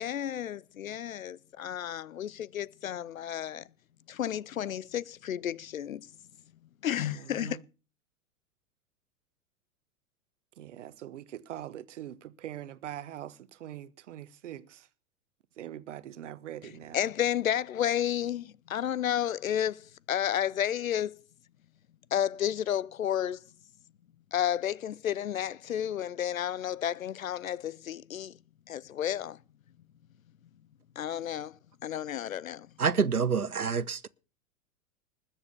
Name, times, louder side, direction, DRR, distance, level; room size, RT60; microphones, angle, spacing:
voice 1, 0.0-3.7 4.1-6.1 6.8-7.6 16.9-21.2 22.1-23.4 24.3-28.4 28.7-29.4 31.0-31.6 31.8-32.7, left 10 dB, 70° left, 0.7 m, -31 dB
voice 2, 7.0-7.7 10.6-14.9 15.6-17.1, right 12 dB, 55° right, 1.1 m, -43 dB
voice 3, 32.8-34.1, right 6 dB, 90° right, 0.7 m, -27 dB
20.0 x 7.4 x 6.9 m
figure-of-eight pair, 95°, 43 cm